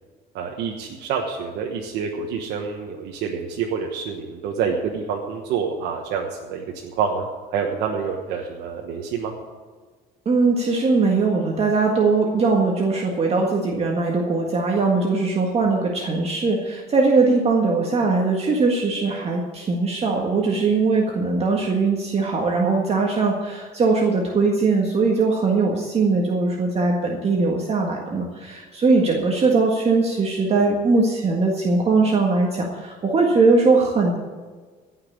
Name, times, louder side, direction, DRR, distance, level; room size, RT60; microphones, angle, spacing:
voice 1, 0.3-9.3, right 6 dB, 90° right, 0 dB, 1.3 m, -27 dB
voice 2, 10.2-34.2, right 3 dB, 35° right, 0 dB, 1.7 m, -20 dB
16.5 x 5.9 x 8.7 m, 1.4 s
cardioid pair, 110°, 17 cm